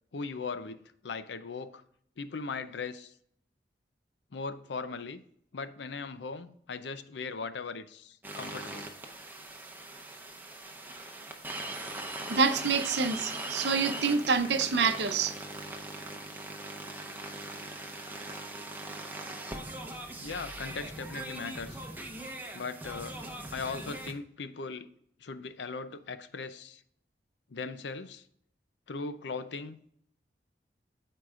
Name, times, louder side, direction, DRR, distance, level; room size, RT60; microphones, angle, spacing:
voice 1, 0.1-1.8 2.2-3.1 4.3-5.2 5.5-8.9 20.2-21.8 22.5-23.2 23.5-24.9 25.2-26.8 27.5-28.2 28.9-29.8, left 4 dB, 85° left, 12 dB, 0.6 m, -39 dB
sound 1, 8.2-24.1, right 2 dB, 10° right, 0.7 m, -40 dB
voice 2, 12.3-15.3, right 5 dB, 80° right, 9 dB, 0.7 m, -27 dB
13.5 x 4.6 x 2.4 m, 0.68 s
head